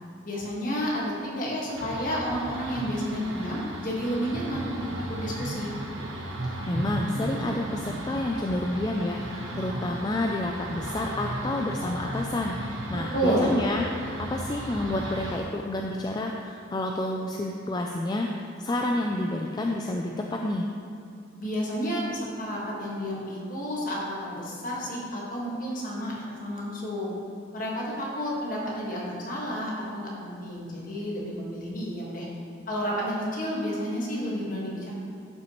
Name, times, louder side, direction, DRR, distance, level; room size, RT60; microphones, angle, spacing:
voice 1, 0.2-4.8 5.1-5.7 13.1-13.5 21.4-27.1 27.5-32.3 32.7-34.9, equal, 45° left, -4 dB, 1.6 m, -31 dB
sound 1, 1.8-15.4, right 1 dB, 90° right, 0.9 m, -35 dB
voice 2, 6.7-20.7, left 1 dB, 20° left, 1 dB, 0.3 m, -29 dB
11.0 x 5.8 x 3.0 m, 2.4 s
head